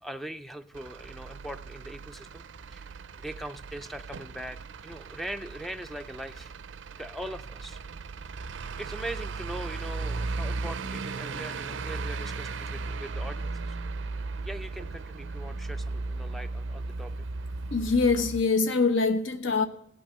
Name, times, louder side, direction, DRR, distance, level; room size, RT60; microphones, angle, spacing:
voice 1, 0.0-2.4 2.7-2.9 3.2-6.5 7.0-7.8 8.5-13.8 14.4-17.1, right 1 dB, ahead, 0.4 m, -41 dB
Truck / Idling, 0.7-18.4, right 3 dB, 65° right, 0.5 m, -36 dB
voice 2, 17.7-19.7, left 4 dB, 70° left, 0.8 m, -24 dB
17.0 x 6.2 x 6.7 m
head